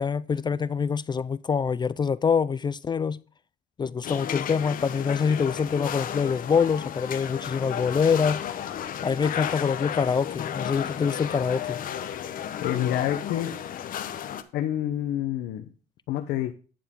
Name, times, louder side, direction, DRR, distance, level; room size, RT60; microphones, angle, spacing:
voice 1, 0.0-3.2 3.8-8.4 9.0-11.8, left 6 dB, 25° left, 0.4 m, -25 dB
sound 1, 4.0-14.4, left 10 dB, 55° left, 1.0 m, -33 dB
voice 2, 12.6-13.6 14.5-15.7 16.1-16.5, left 11 dB, 80° left, 1.0 m, -27 dB
10.5 x 7.1 x 3.7 m
cardioid pair, 110°, 17 cm